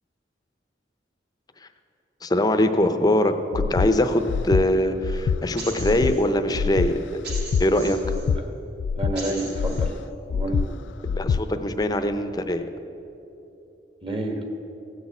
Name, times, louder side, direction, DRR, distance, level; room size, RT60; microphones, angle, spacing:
voice 1, 2.2-7.0 7.6-8.2 11.1-12.7, left 1 dB, 20° left, 8 dB, 0.7 m, -22 dB
Breathing, 3.5-3.9 4.3-4.6 5.0-5.4 5.8-6.1 6.5-6.9 7.3-7.6 8.0-8.4 8.8-9.2 9.5-9.9 10.3-10.7 11.0-11.4, left 6 dB, 90° left, 0.3 m, -24 dB
sound 1, 5.6-6.2 7.2-8.2 9.1-9.8, right 2 dB, 60° right, 3.3 m, -38 dB
voice 2, 9.0-10.0 10.3-10.7 14.0-14.4, right 1 dB, 30° right, 3 dB, 1.4 m, -29 dB
16.0 x 6.6 x 8.4 m, 3.0 s
head